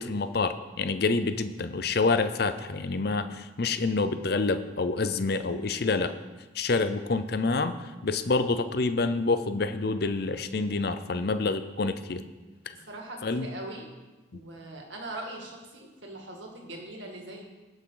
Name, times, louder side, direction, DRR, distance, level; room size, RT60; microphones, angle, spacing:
voice 1, 0.0-6.1 6.5-7.8 8.0-12.2 13.2-13.5, left 3 dB, 55° left, 10 dB, 0.6 m, -27 dB
voice 2, 12.7-13.9 14.3-17.4, right 1 dB, 70° right, 1 dB, 2.0 m, -41 dB
17.5 x 6.1 x 3.9 m, 1.2 s
head